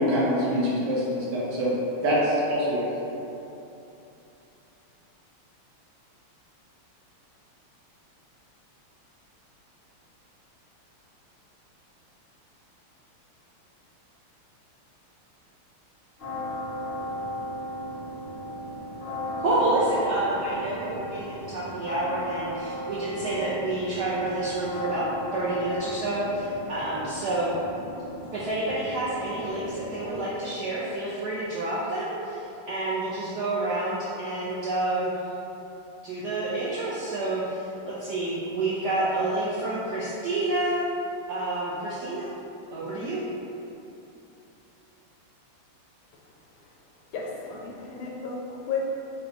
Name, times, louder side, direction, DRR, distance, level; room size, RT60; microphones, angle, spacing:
voice 1, 0.0-1.7 2.0-2.9, equal, 70° right, -6 dB, 1.6 m, -24 dB
sound 1, 16.2-30.3, equal, 45° left, 0.7 m, -36 dB
voice 2, 19.4-27.5 28.3-35.1 36.0-40.9 41.3-42.3 42.7-43.3, right 2 dB, 85° right, -8 dB, 0.9 m, -28 dB
voice 3, 47.1-48.9, left 4 dB, 75° left, -2 dB, 1.3 m, -33 dB
4.1 x 2.2 x 3.9 m, 2.8 s
omnidirectional pair, 2.4 m